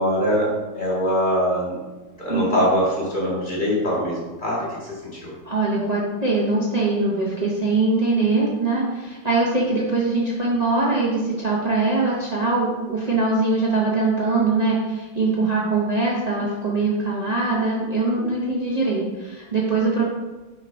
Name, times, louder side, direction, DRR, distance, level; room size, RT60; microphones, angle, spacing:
voice 1, 0.0-1.8 2.2-5.3, equal, 20° left, -5 dB, 2.2 m, -23 dB
voice 2, 5.4-20.0, right 3 dB, 60° right, -5 dB, 0.4 m, -22 dB
6.3 x 4.1 x 5.1 m, 1.2 s
omnidirectional pair, 2.3 m